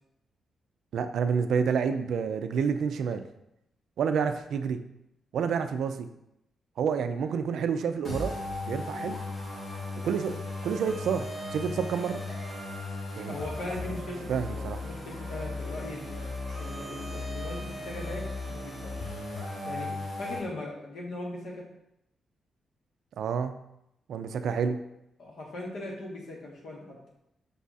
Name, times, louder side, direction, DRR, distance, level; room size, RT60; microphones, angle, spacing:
voice 1, 0.9-3.3 4.0-4.8 5.3-6.1 6.8-8.3 8.6-9.2 10.0-12.2 13.2-13.4 14.3-14.8 23.2-23.6 24.1-24.8, right 6 dB, 70° right, 9 dB, 0.3 m, -29 dB
sound 1, 8.1-20.4, left 2 dB, 40° left, 1.5 m, -36 dB
voice 2, 13.3-16.2 16.6-19.2 19.6-21.6 25.2-27.0, left 2 dB, 75° left, -2 dB, 1.2 m, -39 dB
5.3 x 2.4 x 4.0 m, 0.83 s
wide cardioid pair, 175°, 0 cm